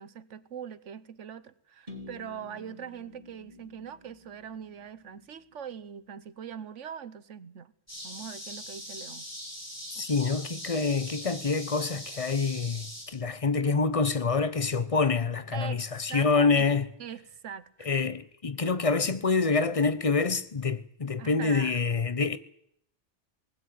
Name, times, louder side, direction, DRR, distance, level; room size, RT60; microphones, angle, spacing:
voice 1, 0.0-7.7 8.0-9.3 10.0-10.1 15.5-17.9 21.2-21.7, right 8 dB, 90° right, 1.3 m, -42 dB
sound 1, 1.9-5.7, left 2 dB, 40° right, 2.4 m, -50 dB
sound 2, 7.9-13.0, equal, 10° left, 6.9 m, -41 dB
voice 2, 9.9-16.9 17.8-22.4, left 4 dB, 30° left, 1.0 m, -26 dB
20.0 x 16.0 x 9.3 m
omnidirectional pair, 1.2 m